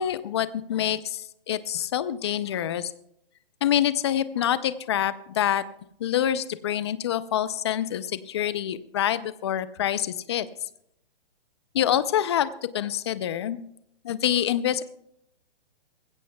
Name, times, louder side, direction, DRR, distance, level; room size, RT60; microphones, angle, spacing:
voice 1, 0.0-2.9 3.6-5.6 6.0-10.5 11.7-13.6 14.0-14.8, left 10 dB, 30° left, 15 dB, 0.5 m, -26 dB
19.5 x 16.0 x 2.3 m, 0.75 s
hypercardioid pair, 160°, 30 cm